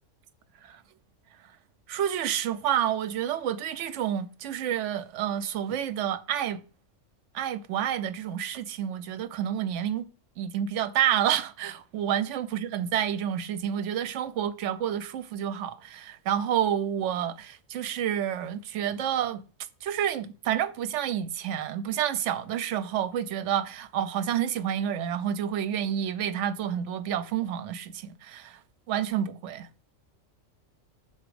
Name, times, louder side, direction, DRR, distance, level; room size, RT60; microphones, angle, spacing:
voice 1, 1.9-6.6 7.3-10.1 10.4-19.4 19.8-28.6 28.9-29.7, right 10 dB, 70° right, 0.9 m, -29 dB
6.0 x 4.3 x 4.8 m
omnidirectional pair, 1.4 m